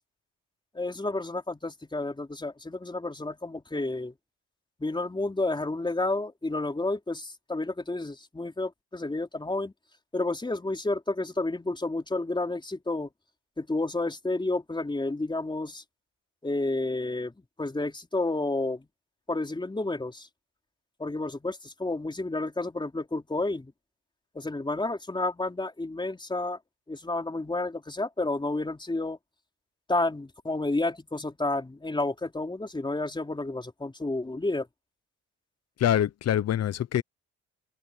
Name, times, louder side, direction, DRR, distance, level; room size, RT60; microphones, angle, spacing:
voice 1, 0.7-4.1 4.8-9.7 10.1-13.1 13.6-15.8 16.4-18.9 19.3-20.3 21.0-23.7 24.3-26.6 26.9-29.2 29.9-34.7, left 2 dB, 15° left, 4.1 m, -30 dB
voice 2, 35.8-37.0, left 10 dB, 55° left, 0.9 m, -25 dB
cardioid pair, 90°, 30 cm